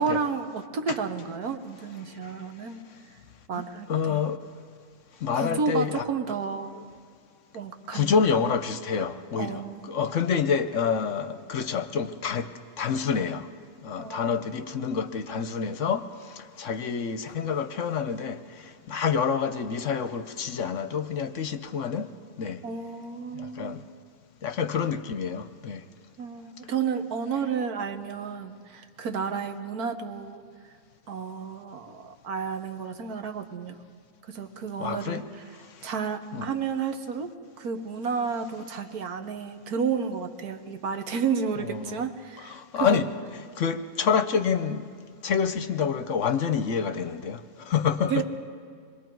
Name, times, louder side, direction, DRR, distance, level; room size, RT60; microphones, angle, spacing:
voice 1, 0.0-2.8 3.5-4.2 5.3-6.7 7.5-8.1 9.4-9.9 13.9-14.4 14.8-15.0 22.6-23.9 26.2-30.4 31.1-33.8 34.3-35.5 35.8-43.0 48.1-48.2, right 6 dB, 75° right, 7 dB, 1.6 m, -31 dB
voice 2, 3.9-4.4 5.2-6.0 7.9-12.5 12.8-13.5 13.8-16.0 16.3-22.1 22.4-22.6 23.3-23.8 24.4-25.8 34.8-35.3 36.3-36.5 41.6-42.0 42.5-43.1 43.6-44.8 45.2-47.4 47.7-48.2, left 6 dB, 60° left, 10 dB, 1.0 m, -27 dB
27.0 x 22.0 x 4.6 m, 2.2 s
omnidirectional pair, 1.6 m